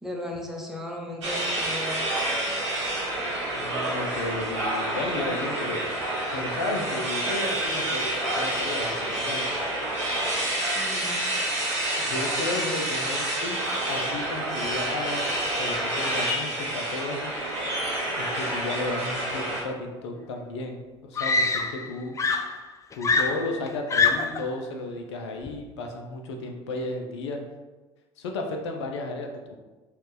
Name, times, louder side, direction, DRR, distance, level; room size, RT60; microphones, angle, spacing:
voice 1, 0.0-2.1 10.8-11.2 12.5-12.8, left 1 dB, 5° right, 0 dB, 0.8 m, -36 dB
sound 1, 1.2-19.6, right 1 dB, 85° right, 1.0 m, -28 dB
voice 2, 3.5-5.8 6.3-8.1 8.4-9.4 12.0-13.6 13.9-17.3 18.2-22.2 22.9-27.4 28.2-29.5, left 2 dB, 75° left, 3 dB, 0.5 m, -33 dB
Screaming, 20.3-20.4 21.2-21.9 22.2-24.5 25.5-25.7, left 4 dB, 20° left, 0.4 m, -24 dB
4.3 x 2.4 x 3.3 m, 1.2 s
figure-of-eight pair, 65°, 15 cm